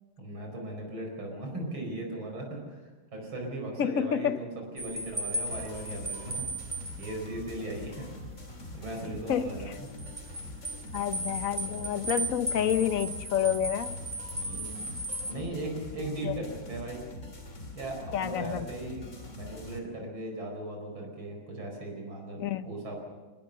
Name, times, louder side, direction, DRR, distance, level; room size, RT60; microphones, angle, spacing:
voice 1, 0.2-6.5 7.0-8.1 8.7-9.9 14.4-14.9 15.2-17.0 17.7-23.0, right 1 dB, 85° right, 1 dB, 5.7 m, -38 dB
voice 2, 3.8-4.4 9.3-9.5 10.9-14.0 16.2-16.3 18.1-18.7 22.4-22.7, left 9 dB, 50° left, 11 dB, 1.1 m, -29 dB
sound 1, 4.8-15.3, right 1 dB, 10° right, 0.8 m, -37 dB
sound 2, 5.5-19.8, left 2 dB, 35° left, 3.2 m, -44 dB
25.0 x 20.0 x 6.7 m, 1.2 s
omnidirectional pair, 2.1 m